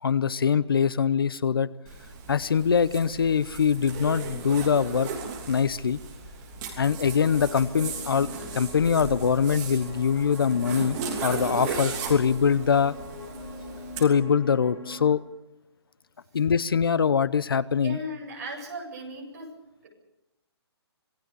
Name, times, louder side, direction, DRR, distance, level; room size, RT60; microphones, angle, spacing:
voice 1, 0.0-1.7 2.3-5.1 5.5-6.0 6.8-8.3 8.5-11.0 11.2-12.9 14.0-15.2 16.3-18.0, left 6 dB, 55° left, 19 dB, 0.8 m, -23 dB
Zipper (clothing), 1.9-14.0, right 5 dB, 15° right, 3.0 m, -37 dB
sound 1, 6.7-15.1, left 3 dB, ahead, 5.6 m, -42 dB
voice 2, 17.8-19.5 19.8-19.9, equal, 35° right, 0 dB, 7.8 m, -37 dB
26.5 x 20.5 x 6.9 m, 0.90 s
hypercardioid pair, 180°, 14 cm